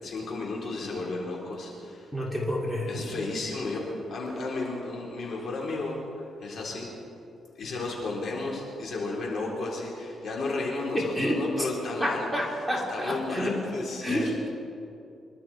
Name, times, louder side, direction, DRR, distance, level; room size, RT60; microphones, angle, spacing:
voice 1, 0.0-2.1 2.9-3.8 4.1-6.9 7.6-12.3 12.9-14.4, left 3 dB, 60° left, -2 dB, 4.1 m, -33 dB
voice 2, 2.1-2.9 10.9-11.4 12.0-13.6 14.0-14.5, equal, ahead, -3 dB, 2.7 m, -29 dB
25.5 x 12.5 x 4.6 m, 2.7 s
cardioid pair, 110°, 0 cm